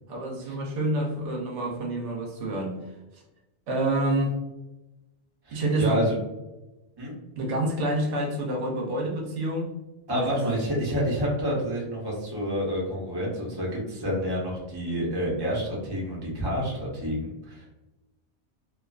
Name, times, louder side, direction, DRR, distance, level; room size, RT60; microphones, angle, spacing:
voice 1, 0.1-2.8 3.7-4.3 5.5-6.0 7.4-9.7 10.1-10.5, right 1 dB, 90° right, 0 dB, 1.0 m, -28 dB
voice 2, 5.4-6.2 7.0-7.1 10.1-17.7, equal, 25° right, -4 dB, 0.7 m, -28 dB
2.4 x 2.3 x 2.3 m, 1.0 s
omnidirectional pair, 1.2 m